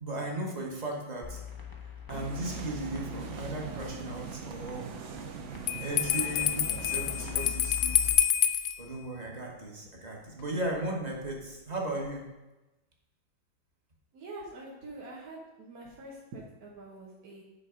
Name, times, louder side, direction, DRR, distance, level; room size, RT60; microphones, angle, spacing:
voice 1, 0.0-1.4 2.1-4.9 5.8-8.1 8.8-12.2, right 2 dB, 25° right, -1 dB, 1.2 m, -36 dB
sound 1, 1.2-8.1, left 7 dB, 30° left, 0.4 m, -43 dB
sound 2, 2.1-7.5, right 6 dB, 75° right, 0.6 m, -41 dB
Bell, 5.7-8.8, left 10 dB, 75° left, 1.1 m, -27 dB
voice 2, 14.1-17.4, right 2 dB, 55° right, -4 dB, 1.5 m, -45 dB
8.9 x 3.9 x 5.0 m, 1.0 s
omnidirectional pair, 2.0 m